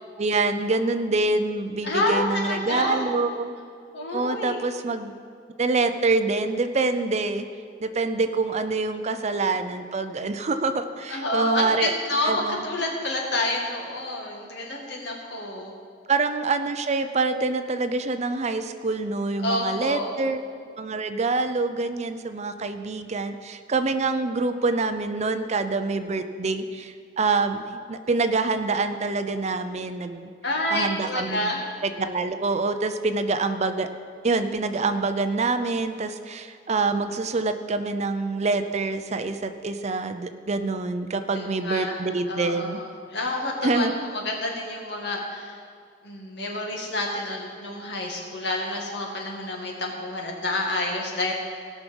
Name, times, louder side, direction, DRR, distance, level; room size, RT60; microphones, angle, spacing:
voice 1, 0.2-3.5 4.1-5.1 5.6-7.5 7.8-11.9 12.2-12.6 16.1-20.4 20.8-27.6 27.9-30.3 30.7-33.9 34.2-42.8 43.6-43.9, right 3 dB, 40° right, 9 dB, 0.5 m, -26 dB
voice 2, 1.8-3.1 3.9-4.6 11.1-15.7 19.4-20.2 30.4-31.6 41.3-42.0 42.3-45.6 46.0-51.3, left 2 dB, 65° left, -1 dB, 2.1 m, -28 dB
17.5 x 6.1 x 5.4 m, 2.2 s
head